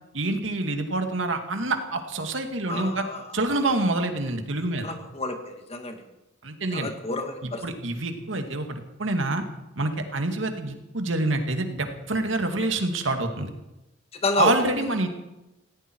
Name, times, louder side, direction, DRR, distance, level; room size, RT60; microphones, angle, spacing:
voice 1, 0.1-3.0 3.3-4.9 6.4-6.9 7.4-9.4 9.8-13.5 14.4-15.1, right 2 dB, 80° right, 5 dB, 2.2 m, -27 dB
voice 2, 2.7-3.3 4.8-6.0 6.7-7.6 14.1-14.7, left 3 dB, 30° left, 5 dB, 2.0 m, -29 dB
19.0 x 16.5 x 4.7 m, 0.95 s
head